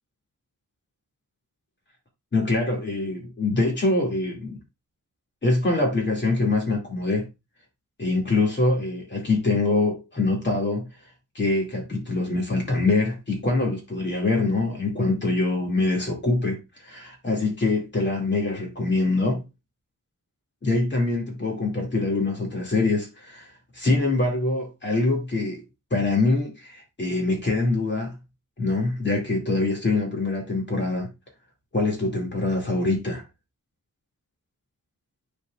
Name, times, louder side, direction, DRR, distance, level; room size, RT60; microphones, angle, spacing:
voice 1, 2.3-4.6 5.4-7.3 8.0-10.9 11.3-19.4 20.6-25.6 25.9-28.1 28.6-31.1 31.7-33.2, left 2 dB, 35° left, 2.6 m, -24 dB
9.7 x 4.6 x 2.5 m
wide cardioid pair, 175°, 33 cm